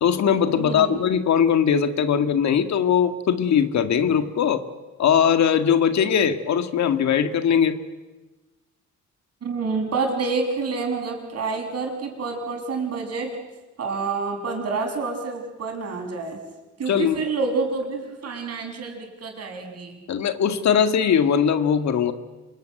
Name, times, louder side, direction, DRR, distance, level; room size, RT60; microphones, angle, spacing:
voice 1, 0.0-4.6 5.0-7.8 16.9-17.3 20.1-22.1, left 8 dB, 65° left, 9 dB, 1.9 m, -20 dB
voice 2, 0.6-1.0 9.4-13.4 13.8-16.4 16.8-20.0, right 4 dB, 55° right, 3 dB, 6.8 m, -28 dB
26.5 x 22.0 x 9.4 m, 1.1 s
cardioid pair, 90°, 30 cm